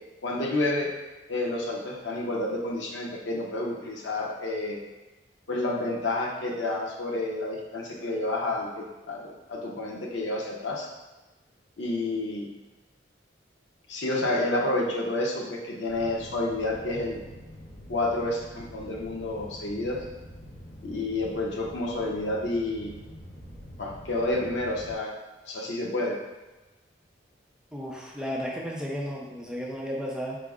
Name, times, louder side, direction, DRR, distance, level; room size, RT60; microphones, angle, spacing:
voice 1, 0.2-0.9 1.3-4.8 5.5-10.9 11.8-12.5 13.9-17.2 17.9-20.0 20.8-22.9 23.8-25.1 25.5-26.2, left 2 dB, 90° left, -2 dB, 0.7 m, -29 dB
sound 1, 15.9-24.9, equal, 45° left, 1.1 m, -46 dB
voice 2, 27.7-30.4, equal, 5° right, -3 dB, 0.4 m, -33 dB
4.6 x 2.0 x 3.6 m, 1.1 s
head